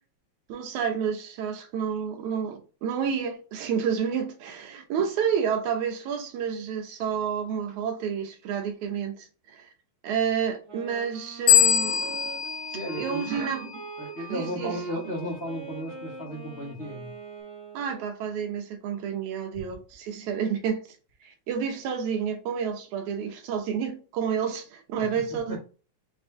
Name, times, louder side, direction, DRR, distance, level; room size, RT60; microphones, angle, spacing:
voice 1, 0.5-9.7 10.0-12.3 13.0-13.7 14.3-15.0 17.7-20.8 21.2-25.6, right 7 dB, 80° right, 2.3 m, -30 dB
Wind instrument woodwind instrument, 10.6-18.3, right 5 dB, 45° right, 1.4 m, -42 dB
sound 1, 11.5-14.0, left 9 dB, 85° left, 1.9 m, -24 dB
voice 2, 12.7-13.4 14.0-17.1 25.0-25.6, equal, 55° left, 0.7 m, -35 dB
5.9 x 2.8 x 3.3 m
omnidirectional pair, 3.3 m